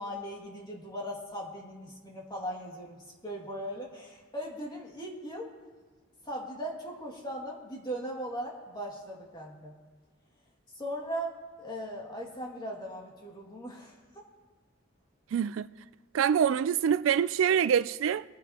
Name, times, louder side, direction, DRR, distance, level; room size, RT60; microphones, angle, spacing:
voice 1, 0.0-3.0 3.2-5.5 6.3-9.7 10.8-14.0, equal, 20° left, 2.2 m, -38 dB
voice 2, 15.3-15.7 16.1-18.2, right 8 dB, 80° right, 0.3 m, -25 dB
23.5 x 9.2 x 2.9 m
head